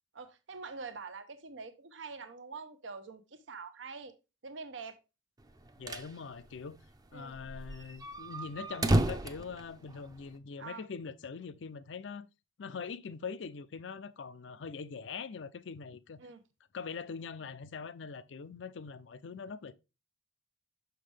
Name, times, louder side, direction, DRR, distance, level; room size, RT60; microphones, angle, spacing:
voice 1, 0.1-4.1 4.4-5.0 7.1-7.3 10.6-10.8 16.2-16.4, right 4 dB, 80° right, 0.8 m, -45 dB
toilet entry door, 5.5-6.1 6.5-6.6 6.8-6.9 7.3-10.3, right 1 dB, 20° right, 0.6 m, -32 dB
voice 2, 5.8-6.8 7.1-12.3 12.6-16.2 16.7-19.7, left 5 dB, 70° left, 0.5 m, -43 dB
6.2 x 5.8 x 3.3 m
head